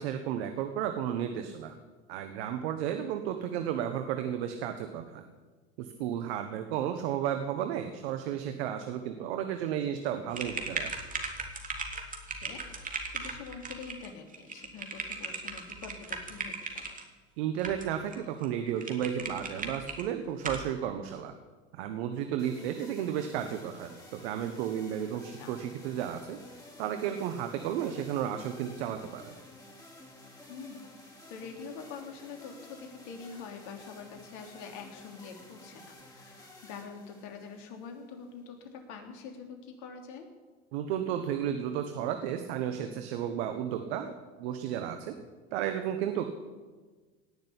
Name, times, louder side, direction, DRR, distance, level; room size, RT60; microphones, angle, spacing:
voice 1, 0.0-1.7 2.1-5.3 5.8-11.0 17.4-21.3 21.7-26.4 26.8-29.3 40.7-44.1 44.4-45.1 45.5-46.3, right 9 dB, 70° right, 7 dB, 1.4 m, -33 dB
sound 1, 10.3-17.0 17.6-18.2 18.4-18.5 18.8-20.0 20.4-20.7, right 4 dB, 25° right, 2.7 m, -38 dB
voice 2, 12.4-17.0 25.3-25.6 30.5-30.9 31.3-40.3, left 5 dB, 60° left, 4 dB, 3.3 m, -45 dB
sound 2, 22.4-38.4, left 1 dB, 10° left, 4.6 m, -52 dB
18.0 x 6.8 x 9.9 m, 1.4 s
hypercardioid pair, 90°, 33 cm